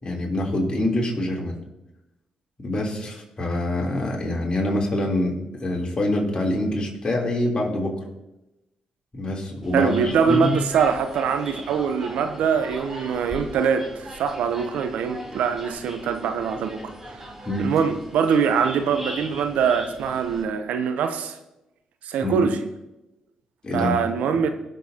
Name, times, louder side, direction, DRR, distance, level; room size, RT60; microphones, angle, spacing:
voice 1, 0.0-1.6 2.6-7.9 9.1-10.6 17.5-17.7 22.2-22.4 23.6-23.9, left 1 dB, 40° left, 3.4 m, -25 dB
sound 1, 9.6-20.4, equal, 10° right, 3.8 m, -40 dB
voice 2, 9.7-17.3 17.6-21.4 22.0-22.6 23.7-24.5, right 6 dB, 80° right, 0.8 m, -23 dB
20.5 x 6.9 x 2.9 m
supercardioid pair, 55°, 2 cm